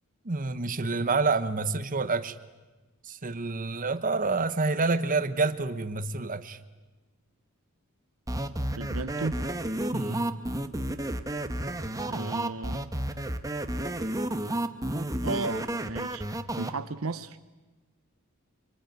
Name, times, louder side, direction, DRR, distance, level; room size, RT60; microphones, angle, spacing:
voice 1, 0.2-2.4 3.0-6.6 9.9-10.3, right 3 dB, 40° right, 1.2 m, -28 dB
sound 1, 8.3-16.7, right 1 dB, 15° right, 1.3 m, -31 dB
voice 2, 8.8-9.4 12.0-12.8 15.2-16.2 16.5-17.4, right 3 dB, 70° right, 1.0 m, -34 dB
25.5 x 25.0 x 9.3 m
head